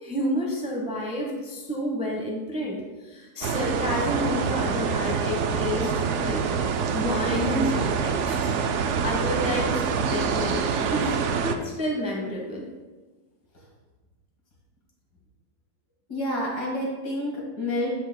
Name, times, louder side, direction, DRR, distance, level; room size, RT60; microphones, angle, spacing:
voice 1, 0.0-6.5 6.9-8.5 9.0-10.6 10.9-12.7, equal, 5° right, -1 dB, 0.9 m, -29 dB
sound 1, 3.4-11.6, right 6 dB, 70° right, 0.7 m, -26 dB
voice 2, 16.1-17.9, left 1 dB, 75° left, -3 dB, 2.5 m, -29 dB
14.0 x 4.9 x 2.2 m, 1.3 s
omnidirectional pair, 1.7 m